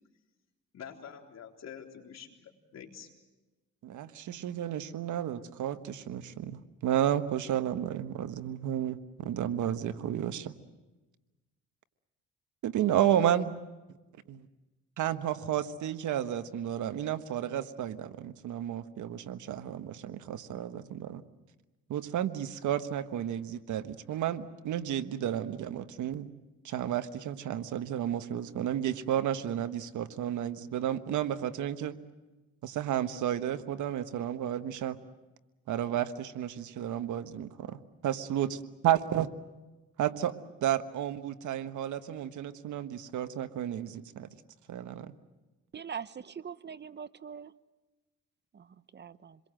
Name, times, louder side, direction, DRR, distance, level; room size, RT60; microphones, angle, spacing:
voice 1, 0.7-3.1, left 8 dB, 60° left, 2 dB, 3.8 m, -47 dB
voice 2, 3.8-10.5 12.6-13.5 14.3-14.5 15.0-21.2 21.9-26.3 26.6-32.0 32.6-35.0 35.7-38.5 38.8-39.3 40.0-40.3 40.6-44.3 44.7-45.1, right 10 dB, 75° right, 10 dB, 1.3 m, -32 dB
voice 3, 45.7-47.5 48.5-48.7 48.9-49.4, right 7 dB, 35° right, 16 dB, 0.8 m, -42 dB
26.5 x 22.5 x 7.7 m, 1.1 s
cardioid pair, 90°, 30 cm